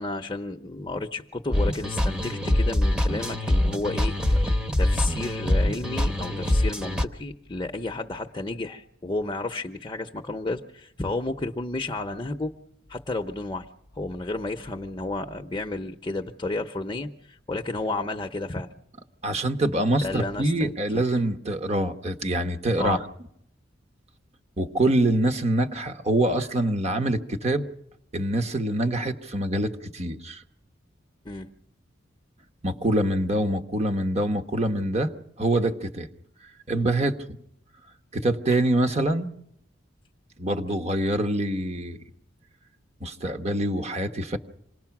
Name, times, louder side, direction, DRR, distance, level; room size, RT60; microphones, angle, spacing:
voice 1, 0.0-12.5 12.9-13.7 13.9-18.7 20.0-21.0 22.8-23.0 31.2-31.5, left 2 dB, 20° left, 5 dB, 0.8 m, -32 dB
sound 1, 1.5-7.0, left 1 dB, 5° right, 1.0 m, -24 dB
voice 2, 19.2-23.0 24.6-27.6 28.1-30.4 32.6-35.1 35.4-36.1 36.7-37.2 38.1-39.3 40.4-42.0 43.0-44.4, right 1 dB, 35° right, 7 dB, 1.3 m, -25 dB
27.0 x 19.5 x 6.0 m, 0.74 s
head